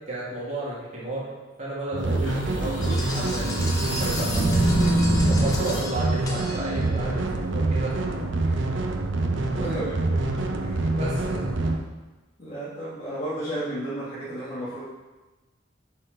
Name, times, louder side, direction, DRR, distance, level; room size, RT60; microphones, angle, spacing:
voice 1, 0.1-1.3 1.6-3.5 4.0-4.6 5.3-8.0 11.0-11.5, right 2 dB, 40° right, -6 dB, 1.8 m, -32 dB
sound 1, 1.9-11.8, right 2 dB, 75° right, 0.7 m, -26 dB
sound 2, 2.1-5.8, right 1 dB, 75° left, 1.9 m, -25 dB
sound 3, 2.8-7.1, left 1 dB, 20° left, 1.0 m, -37 dB
voice 2, 7.0-7.4 8.4-8.6 9.3-10.2 10.6-10.9 12.4-14.8, right 1 dB, 40° left, -11 dB, 1.7 m, -34 dB
5.9 x 4.3 x 5.0 m, 1.2 s
head